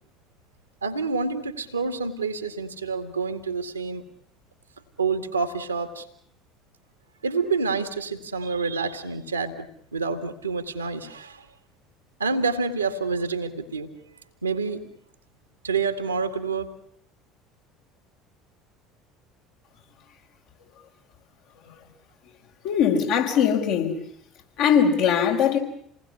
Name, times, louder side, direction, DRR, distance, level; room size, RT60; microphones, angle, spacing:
voice 1, 0.8-4.0 5.0-6.0 7.2-11.4 12.2-13.9 14.4-14.8 15.6-16.7, right 4 dB, 85° right, 2.3 m, -28 dB
voice 2, 22.6-24.0 24.6-25.6, left 7 dB, 60° left, 5.2 m, -21 dB
29.0 x 20.0 x 8.5 m
figure-of-eight pair, 65°, 0 cm